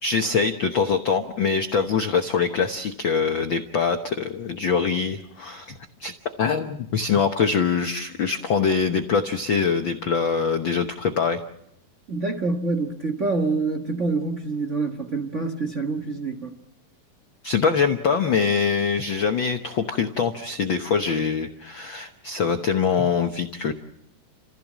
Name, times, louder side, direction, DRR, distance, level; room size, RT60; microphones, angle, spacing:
voice 1, 0.0-6.1 6.4-11.4 17.4-23.7, left 5 dB, 90° left, 1.0 m, -23 dB
voice 2, 12.1-16.5, right 3 dB, 70° right, 0.7 m, -26 dB
30.0 x 15.5 x 7.4 m
omnidirectional pair, 3.9 m